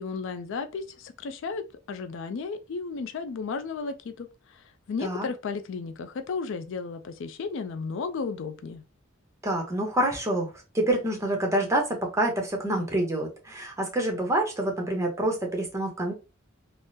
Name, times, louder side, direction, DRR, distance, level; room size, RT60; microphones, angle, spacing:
voice 1, 0.0-8.8, left 4 dB, 65° left, 0.4 m, -34 dB
voice 2, 9.4-16.1, right 1 dB, 15° right, 0.8 m, -27 dB
3.5 x 2.0 x 2.7 m
head